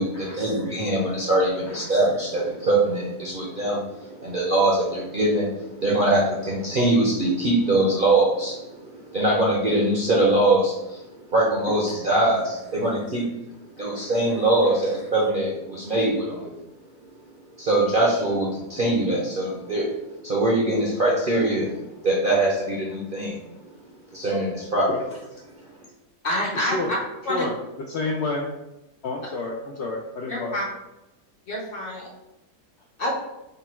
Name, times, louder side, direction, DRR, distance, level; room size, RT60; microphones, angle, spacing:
voice 1, 0.0-13.3 13.8-16.6 17.6-20.0 20.2-23.7 24.1-24.9, right 2 dB, 50° right, -4 dB, 0.6 m, -23 dB
voice 2, 13.8-14.1 24.9-25.0 26.5-26.9 27.3-27.5 27.9-28.5 29.0-30.6, left 3 dB, 85° left, 0 dB, 0.6 m, -29 dB
voice 3, 26.2-27.0 27.2-27.4 30.3-30.7 31.5-32.0 33.0-33.1, left 1 dB, 45° left, -2 dB, 0.8 m, -27 dB
3.9 x 2.2 x 4.3 m, 0.96 s
omnidirectional pair, 1.7 m